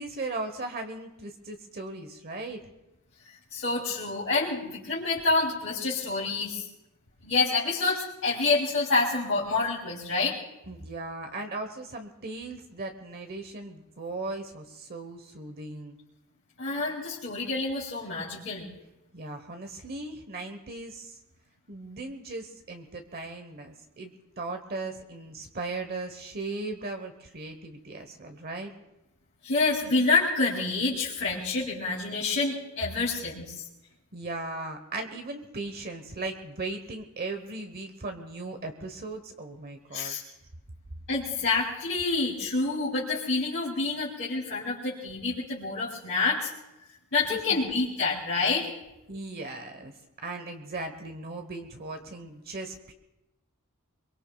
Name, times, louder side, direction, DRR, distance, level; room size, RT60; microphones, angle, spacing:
voice 1, 0.0-2.6 10.7-16.0 19.1-21.2 21.7-28.7 34.1-40.2 47.3-47.6 49.1-49.9 50.2-52.9, right 2 dB, 45° right, 6 dB, 1.1 m, -37 dB
voice 2, 3.5-6.7 7.2-10.4 16.6-18.7 29.4-33.6 39.9-40.2 41.1-46.5 47.1-48.7, left 3 dB, 60° left, -8 dB, 3.2 m, -27 dB
24.5 x 22.5 x 2.3 m, 0.95 s
head